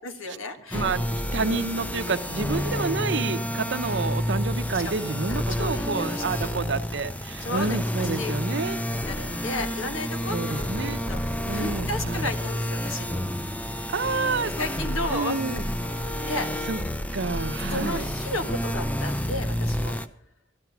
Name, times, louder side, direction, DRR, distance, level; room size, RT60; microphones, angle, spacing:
voice 1, 0.0-0.9 1.4-1.5 4.7-6.6 7.4-8.3 8.9-13.2 14.6-15.4 16.3-16.5 17.7-20.0, left 1 dB, 90° left, 6 dB, 1.6 m, -34 dB
sound 1, 0.7-20.1, equal, 10° left, 0.5 m, -29 dB
voice 2, 0.7-8.8 10.3-11.0 11.5-12.3 13.9-14.5 15.1-15.6 16.2-16.4 16.7-16.8 17.1-18.1, right 4 dB, 60° right, 11 dB, 0.7 m, -29 dB
13.0 x 12.0 x 6.0 m, 0.68 s
head